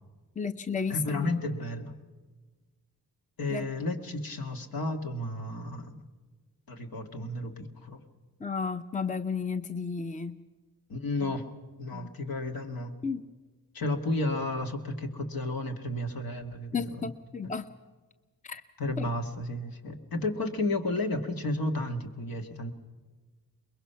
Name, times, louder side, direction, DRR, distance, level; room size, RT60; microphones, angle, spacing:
voice 1, 0.4-1.3 3.5-3.7 8.4-10.4 11.2-11.3 11.9-12.1 13.0-13.2 16.7-17.6 18.4-18.6 19.0-19.1, left 5 dB, 20° left, 11 dB, 0.7 m, -33 dB
voice 2, 0.9-1.9 3.4-6.0 6.7-8.0 10.9-11.5 11.8-12.9 13.7-17.1 18.8-22.7, left 2 dB, 65° left, 5 dB, 2.0 m, -32 dB
23.5 x 21.5 x 5.7 m, 1.3 s
cardioid pair, 75°, 38 cm